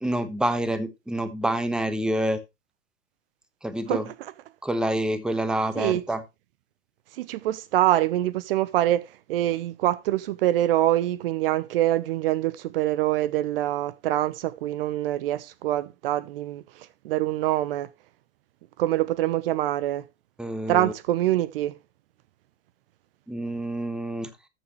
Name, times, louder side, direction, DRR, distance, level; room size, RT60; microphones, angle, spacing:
voice 1, 0.0-2.4 3.6-4.0 4.6-6.2 20.4-20.9 23.3-24.3, right 1 dB, ahead, 1.1 m, -27 dB
voice 2, 7.2-16.6 17.0-17.9 18.8-20.0 20.7-21.7, right 14 dB, 55° right, 0.8 m, -25 dB
13.5 x 7.1 x 3.1 m
figure-of-eight pair, 95°, 34 cm